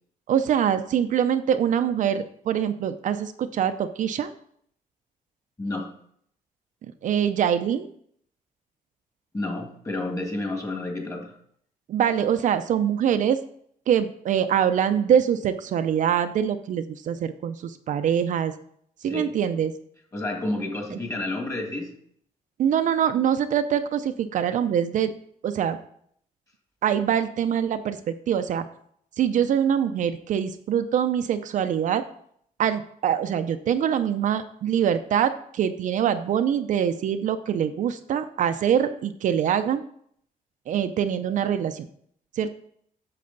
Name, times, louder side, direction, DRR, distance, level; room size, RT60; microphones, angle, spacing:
voice 1, 0.3-4.3 6.8-7.9 11.9-13.4 13.9-18.5 19.0-19.7 20.9-21.0 22.6-25.1 25.4-25.8 26.8-28.6 29.2-32.0 32.6-39.8 40.7-41.9 42.4-42.5, right 9 dB, 60° right, 9 dB, 0.5 m, -24 dB
voice 2, 5.6-5.9 9.3-11.3 19.0-19.3 20.1-21.9, left 2 dB, 20° left, 2 dB, 1.8 m, -30 dB
8.6 x 6.7 x 3.9 m, 0.64 s
cardioid pair, 150°, 15 cm